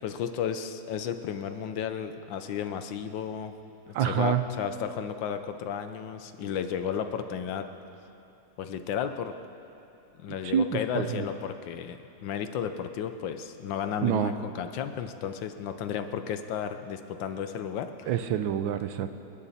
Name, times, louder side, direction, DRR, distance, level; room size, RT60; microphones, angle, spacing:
voice 1, 0.0-3.5 3.9-7.7 8.6-9.3 10.2-18.1, left 8 dB, 75° left, 9 dB, 1.5 m, -33 dB
voice 2, 3.9-4.4 10.4-11.2 14.0-14.3 18.1-19.2, right 9 dB, 80° right, 10 dB, 1.5 m, -27 dB
26.5 x 10.0 x 4.2 m, 2.9 s
omnidirectional pair, 2.1 m